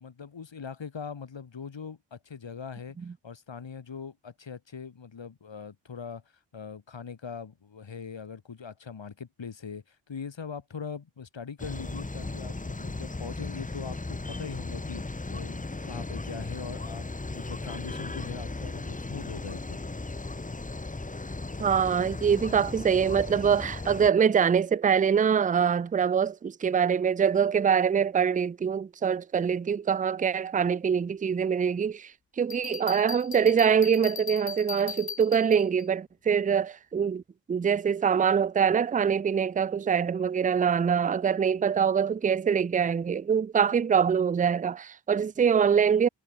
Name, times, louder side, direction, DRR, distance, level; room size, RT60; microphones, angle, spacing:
voice 1, 0.0-3.0 3.2-6.2 6.5-19.8, left 6 dB, 80° left, 7.3 m, -41 dB
sound 1, 11.6-24.1, left 2 dB, 15° left, 1.1 m, -36 dB
voice 2, 21.6-32.1 32.4-37.2 37.5-46.1, right 7 dB, 20° right, 0.3 m, -24 dB
Bell, 32.5-35.8, left 7 dB, 55° left, 1.0 m, -39 dB
cardioid pair, 65°, 44 cm